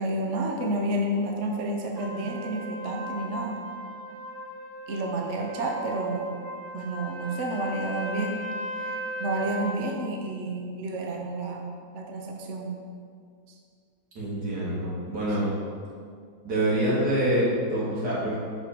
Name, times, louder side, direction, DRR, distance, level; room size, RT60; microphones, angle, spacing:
voice 1, 0.0-3.6 4.9-6.3 6.7-8.4 8.8-12.7 14.8-15.3 15.7-15.8, right 1 dB, 55° right, 1 dB, 0.9 m, -30 dB
Trumpet, 2.0-9.8, equal, 40° right, 1.6 m, -37 dB
voice 2, 14.1-15.5 16.4-18.4, right 1 dB, 80° right, -8 dB, 2.5 m, -26 dB
6.3 x 4.5 x 4.5 m, 2.2 s
omnidirectional pair, 1.8 m